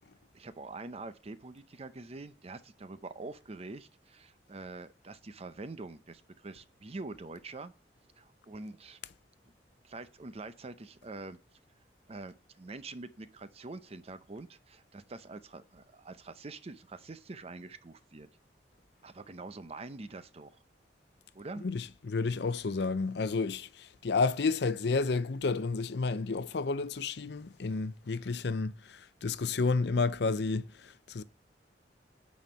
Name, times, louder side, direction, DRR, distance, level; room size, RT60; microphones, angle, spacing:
voice 1, 0.3-7.7 8.2-9.0 9.8-11.4 12.1-18.3 19.0-20.6 21.3-21.7, right 3 dB, 35° right, 0.6 m, -45 dB
voice 2, 21.6-31.2, left 4 dB, 65° left, 0.6 m, -31 dB
9.3 x 4.3 x 5.7 m
head